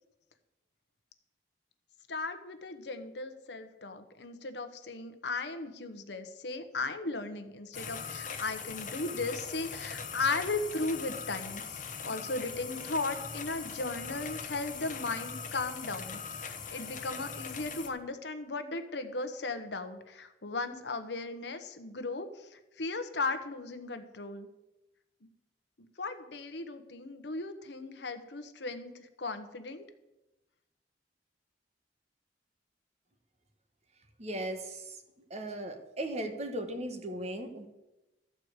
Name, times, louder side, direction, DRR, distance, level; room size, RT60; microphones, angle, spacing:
voice 1, 2.1-24.5 25.2-25.3 25.8-29.8, left 3 dB, 75° left, 8 dB, 1.0 m, -36 dB
sound 1, 7.7-17.9, left 6 dB, 45° left, 1.1 m, -41 dB
voice 2, 34.2-35.0 35.3-37.7, right 1 dB, 40° right, 7 dB, 1.2 m, -37 dB
13.5 x 4.7 x 8.1 m, 1.0 s
head